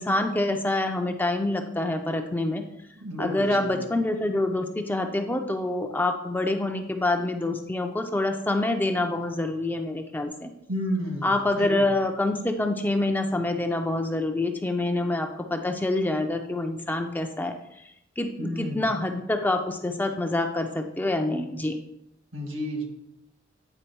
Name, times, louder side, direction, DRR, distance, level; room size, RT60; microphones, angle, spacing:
voice 1, 0.0-2.6 3.2-10.5 11.2-17.5 18.2-21.8, left 2 dB, 10° left, 5 dB, 0.4 m, -26 dB
voice 2, 3.0-3.9 10.7-11.3 11.6-11.9 18.4-18.9 22.3-22.8, equal, 75° right, 2 dB, 1.6 m, -31 dB
9.0 x 3.5 x 4.5 m, 0.81 s
head